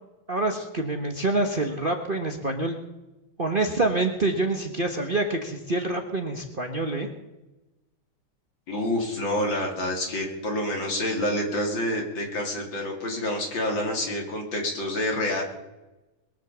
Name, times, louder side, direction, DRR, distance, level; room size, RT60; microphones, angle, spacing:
voice 1, 0.3-2.8 3.4-7.1, right 2 dB, 30° right, 4 dB, 1.1 m, -26 dB
voice 2, 8.7-15.4, left 1 dB, 65° left, 1 dB, 3.7 m, -28 dB
21.5 x 8.0 x 7.3 m, 1.0 s
omnidirectional pair, 2.2 m